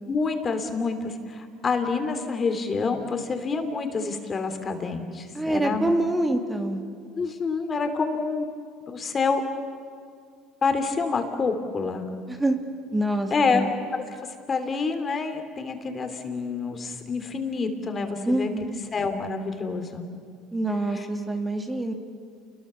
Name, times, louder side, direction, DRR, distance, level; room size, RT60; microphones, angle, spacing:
voice 1, 0.1-5.9 7.1-8.5 8.9-9.4 10.6-12.1 13.3-14.0 14.5-18.5 18.9-20.1 20.9-21.1, left 4 dB, 30° left, 7 dB, 3.1 m, -27 dB
voice 2, 5.3-6.8 12.3-12.6 12.9-13.7 18.3-18.8 20.5-21.9, right 1 dB, 15° right, 5 dB, 2.3 m, -26 dB
29.0 x 22.0 x 7.0 m, 2.1 s
supercardioid pair, 90°, 0 cm